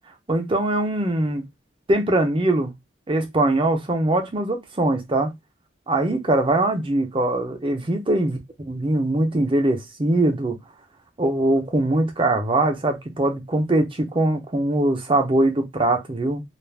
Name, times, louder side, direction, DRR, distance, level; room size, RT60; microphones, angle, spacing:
voice 1, 0.3-1.4 1.9-2.7 3.1-5.3 5.9-8.4 8.7-10.6 11.2-16.4, right 1 dB, 30° right, 0.6 m, -22 dB
2.4 x 2.1 x 3.3 m
head